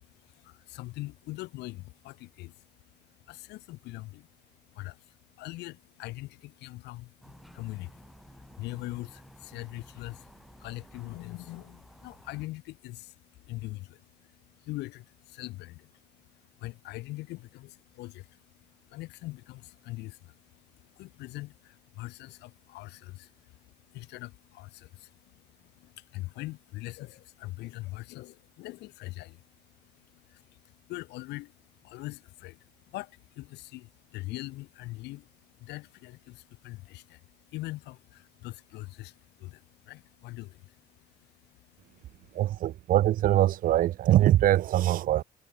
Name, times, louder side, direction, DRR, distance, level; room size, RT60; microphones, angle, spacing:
voice 1, 0.0-42.4, left 19 dB, 85° left, 2.8 m, -43 dB
sound 1, 7.2-12.5, equal, ahead, 2.9 m, -53 dB
voice 2, 42.3-45.2, right 13 dB, 55° right, 0.5 m, -23 dB
cardioid pair, 110°, 17 cm